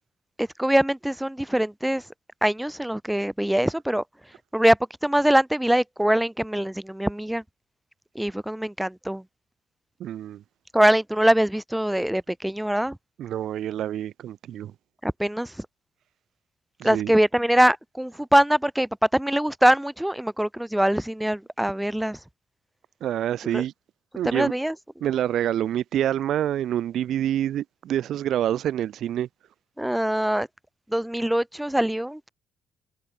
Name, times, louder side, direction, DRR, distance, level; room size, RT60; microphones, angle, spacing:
voice 1, 0.4-2.0 2.4-4.0 4.5-7.4 8.1-9.2 10.7-13.0 15.0-15.7 16.8-22.2 23.5-23.6 24.2-24.7 29.8-30.5 30.9-32.3, right 1 dB, 5° right, 0.7 m, -23 dB
voice 2, 10.0-10.4 13.2-14.7 16.8-17.1 23.0-23.7 24.2-24.5 25.0-29.3, right 11 dB, 75° right, 0.8 m, -27 dB
cardioid pair, 90°, 0 cm